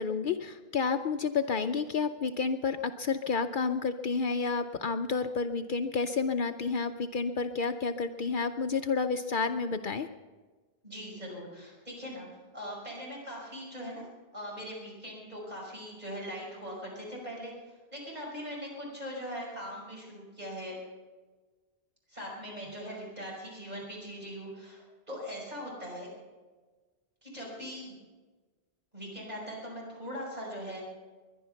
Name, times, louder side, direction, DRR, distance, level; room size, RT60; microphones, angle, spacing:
voice 1, 0.0-10.1, left 5 dB, 60° left, 8 dB, 0.7 m, -30 dB
voice 2, 10.8-12.3 12.5-14.0 14.3-17.5 17.9-20.8 22.1-26.1 27.2-27.9 28.9-30.8, equal, 40° right, -3 dB, 5.6 m, -41 dB
21.5 x 11.0 x 5.7 m, 1.3 s
omnidirectional pair, 1.0 m